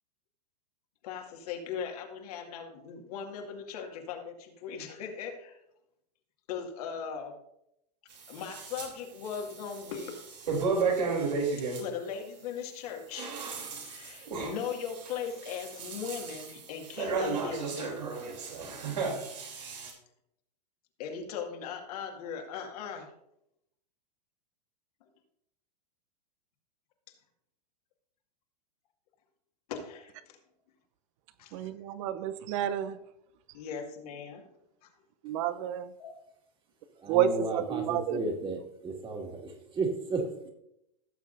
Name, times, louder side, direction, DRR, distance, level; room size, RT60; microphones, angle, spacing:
voice 1, 1.0-5.6 6.5-7.4 8.3-10.2 10.6-10.8 11.8-13.4 13.8-18.0 19.1-19.3 21.0-23.1 27.1-27.2 29.7-30.4 31.4-31.7 33.5-34.5 36.0-36.1, left 7 dB, 65° left, 3 dB, 2.1 m, -39 dB
sound 1, 8.1-8.9 9.2-11.8 12.9-19.9, right 4 dB, 85° right, 3.3 m, -34 dB
voice 2, 31.5-33.0 35.2-35.9 37.1-38.2, right 10 dB, 50° right, 13 dB, 0.8 m, -30 dB
voice 3, 37.0-40.5, right 3 dB, 25° right, 2 dB, 2.1 m, -34 dB
16.5 x 7.4 x 2.7 m, 0.80 s
hypercardioid pair, 115°, 21 cm